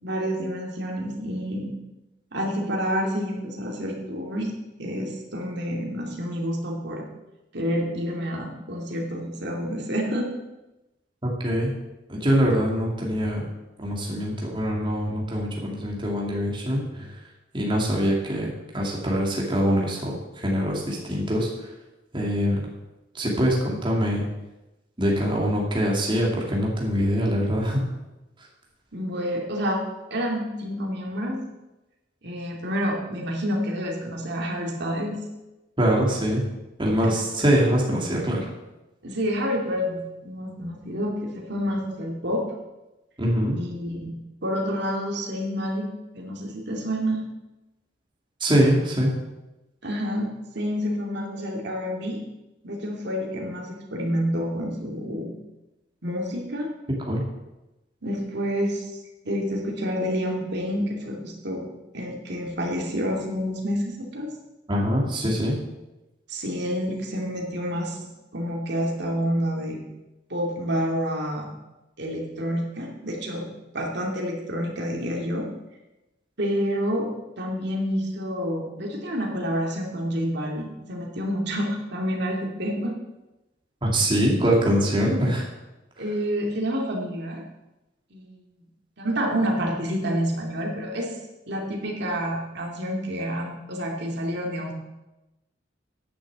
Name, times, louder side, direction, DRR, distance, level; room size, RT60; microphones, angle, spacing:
voice 1, 0.0-1.7 2.3-4.5 4.8-7.0 7.5-10.3 28.9-29.8 30.1-31.4 32.2-35.2 39.0-42.4 43.6-44.2 44.4-45.9 46.1-47.3 49.8-52.2 52.6-55.3 56.0-56.7 58.0-58.8 59.2-64.3 66.3-68.0 68.3-69.8 70.3-71.5 72.0-73.5 73.7-75.5 76.4-77.1 77.4-82.9 86.0-87.4 88.1-88.4 89.0-91.1 91.5-94.7, equal, 65° right, 0 dB, 2.7 m, -28 dB
voice 2, 11.2-11.7 12.1-13.4 13.8-17.2 17.5-21.7 22.1-22.6 23.1-24.3 25.0-27.8 35.8-36.4 36.8-38.5 43.2-43.6 48.4-49.1 57.0-57.2 64.7-65.6 83.8-85.4, equal, 25° right, -3 dB, 2.4 m, -23 dB
10.0 x 7.2 x 7.5 m, 1.0 s
head